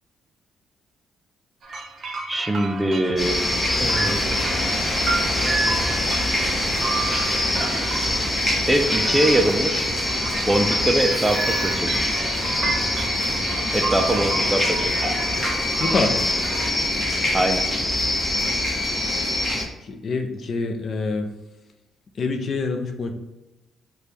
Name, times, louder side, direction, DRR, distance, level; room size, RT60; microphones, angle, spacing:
sound 1, 1.6-16.7, right 3 dB, 50° right, 0.7 m, -31 dB
voice 1, 2.3-3.4 3.8-4.2 8.7-9.9 10.5-12.2 13.7-15.1 17.3-17.6, right 1 dB, 10° right, 4 dB, 0.5 m, -23 dB
sound 2, 3.2-19.6, left 1 dB, 25° left, 1.1 m, -24 dB
voice 2, 15.8-16.2 19.8-21.3 22.2-23.1, left 3 dB, 50° left, 5 dB, 0.5 m, -25 dB
3.2 x 2.3 x 4.2 m, 0.99 s
cardioid pair, 90°, 0 cm